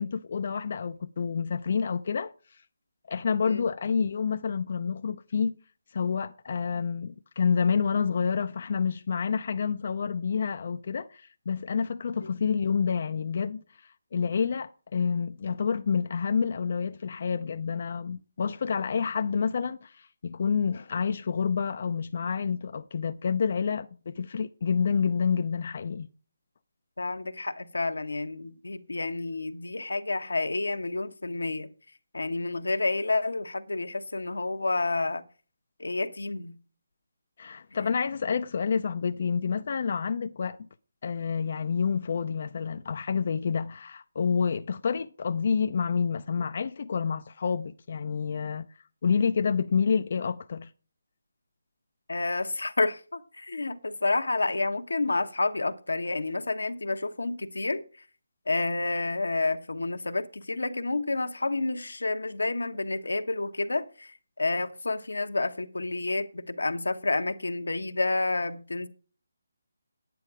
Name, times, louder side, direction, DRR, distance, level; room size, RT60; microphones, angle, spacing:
voice 1, 0.0-2.6 3.1-5.6 5.9-26.1 37.4-40.7 41.0-48.7 49.0-50.7, left 6 dB, 50° left, 0.5 m, -28 dB
voice 2, 27.0-31.7 32.1-35.2 35.8-36.6 52.1-57.8 58.5-68.9, left 3 dB, 90° left, 1.1 m, -29 dB
9.7 x 9.3 x 4.8 m
figure-of-eight pair, 160°, 0 cm